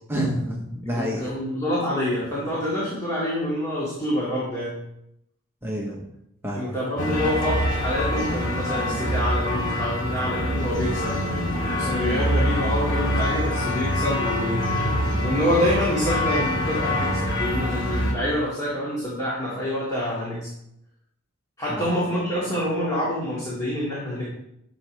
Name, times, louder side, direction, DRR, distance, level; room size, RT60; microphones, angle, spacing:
voice 1, 0.1-1.3 5.6-6.0 6.4-6.7 21.8-21.9, equal, 10° right, -1 dB, 1.0 m, -28 dB
voice 2, 0.9-4.8 6.5-11.4 11.7-14.7 15.2-20.5 21.6-24.3, left 1 dB, 15° left, -7 dB, 2.1 m, -27 dB
sound 1, 7.0-18.1, left 1 dB, 60° left, 2.1 m, -25 dB
11.0 x 7.0 x 3.3 m, 0.80 s
head